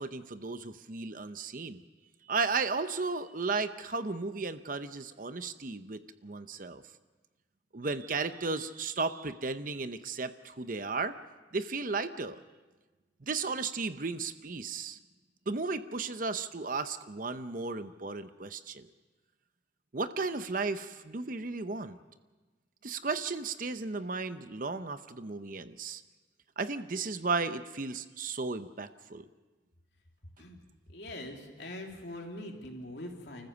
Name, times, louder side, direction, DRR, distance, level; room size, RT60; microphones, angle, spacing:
voice 1, 0.0-1.8 2.2-6.8 7.7-11.1 11.5-12.4 13.2-15.0 15.5-18.9 19.9-22.0 22.8-26.0 26.6-29.2, right 4 dB, 45° right, 11 dB, 0.8 m, -34 dB
voice 2, 30.9-33.5, left 1 dB, 60° left, 1 dB, 3.2 m, -42 dB
30.0 x 14.5 x 7.0 m, 1.3 s
head